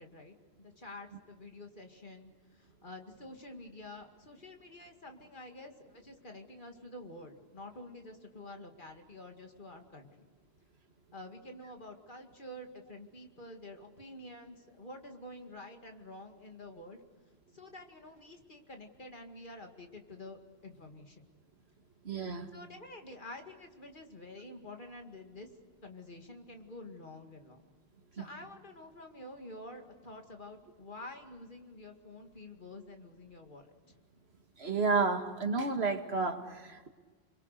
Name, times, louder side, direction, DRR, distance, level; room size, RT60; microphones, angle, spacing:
voice 1, 0.0-10.3 11.1-17.0 17.5-21.3 22.5-25.5 25.8-27.6 28.1-33.7, left 1 dB, 50° left, 4 dB, 2.4 m, -49 dB
voice 2, 22.0-22.5 28.2-28.3 34.6-36.9, right 4 dB, 80° right, 5 dB, 2.2 m, -31 dB
30.0 x 22.5 x 6.7 m, 1.4 s
omnidirectional pair, 1.1 m